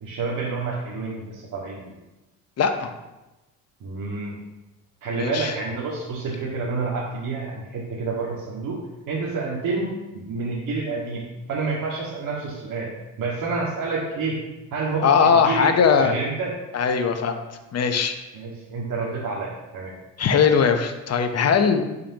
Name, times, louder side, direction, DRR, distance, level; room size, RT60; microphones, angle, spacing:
voice 1, 0.0-1.9 3.8-4.3 5.0-8.8 9.1-11.2 11.5-12.9 13.2-14.4 14.7-15.7 16.0-16.5 18.3-19.9, right 4 dB, 55° right, -7 dB, 2.0 m, -28 dB
voice 2, 2.6-2.9 5.2-5.5 15.0-16.1 16.7-17.4 17.7-18.2 20.2-21.8, left 6 dB, 45° left, 6 dB, 1.1 m, -20 dB
11.0 x 5.4 x 3.0 m, 1.0 s
supercardioid pair, 80°, 37 cm